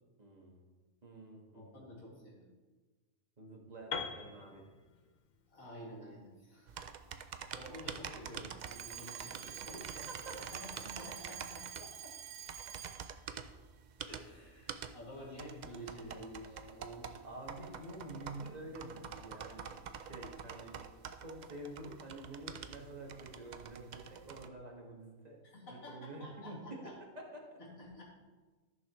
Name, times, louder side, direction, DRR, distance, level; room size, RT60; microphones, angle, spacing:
voice 1, 0.2-0.6 1.0-1.8 3.4-4.6 9.4-9.6 10.1-10.4 17.2-19.7 20.1-20.8 21.2-25.4 25.7-27.6, right 1 dB, 30° right, -1 dB, 1.7 m, -48 dB
voice 2, 1.5-2.5 5.5-6.8 7.5-10.1 10.4-11.6 14.1-17.1 25.5-26.9 27.6-28.0, equal, 80° left, -4 dB, 2.9 m, -50 dB
Piano, 3.9-7.8, left 5 dB, 45° left, 0.7 m, -45 dB
sound 1, 6.7-24.5, right 7 dB, 85° right, 0.4 m, -47 dB
Alarm, 8.6-13.2, right 9 dB, 60° right, 0.7 m, -48 dB
14.5 x 6.4 x 3.1 m, 1.3 s
omnidirectional pair, 1.4 m